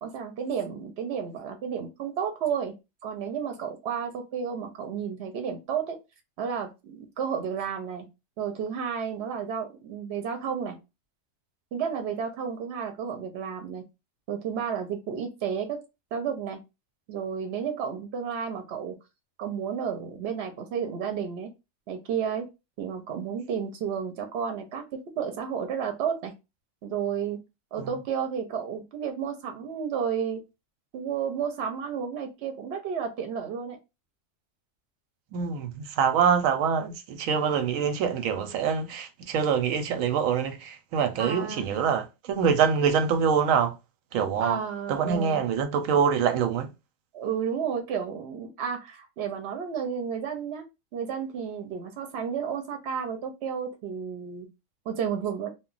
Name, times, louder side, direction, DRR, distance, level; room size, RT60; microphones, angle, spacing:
voice 1, 0.0-2.7 3.0-6.0 6.4-8.1 8.4-10.8 11.7-13.8 14.3-15.8 16.1-16.6 17.1-19.0 19.4-21.5 21.9-22.5 22.8-26.3 26.8-27.4 27.7-30.4 30.9-33.8 41.2-41.7 44.4-45.4 47.1-50.6 50.9-54.5 54.9-55.5, right 7 dB, 65° right, 0.7 m, -32 dB
voice 2, 35.3-43.8 44.1-44.6 44.9-46.7, right 7 dB, 90° right, 1.0 m, -25 dB
2.2 x 2.0 x 3.7 m
omnidirectional pair, 1.3 m